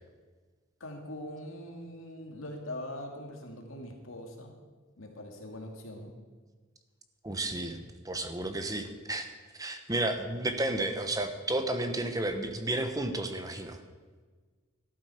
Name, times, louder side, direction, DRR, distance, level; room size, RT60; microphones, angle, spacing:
voice 1, 0.8-4.5 5.0-6.1, left 1 dB, 70° left, 2 dB, 2.4 m, -42 dB
voice 2, 7.2-13.8, right 2 dB, 15° right, 7 dB, 1.1 m, -32 dB
13.5 x 12.5 x 5.0 m, 1.4 s
head